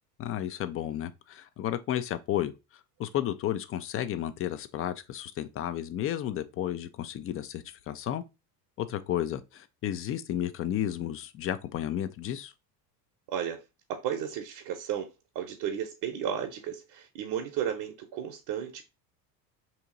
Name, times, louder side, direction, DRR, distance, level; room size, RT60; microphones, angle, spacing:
voice 1, 0.2-2.5 3.0-8.2 8.8-12.5, left 11 dB, 30° left, 0.4 m, -32 dB
voice 2, 13.3-13.6 13.9-18.8, right 9 dB, 55° right, 0.8 m, -34 dB
2.8 x 2.7 x 3.7 m
supercardioid pair, 85°, 46 cm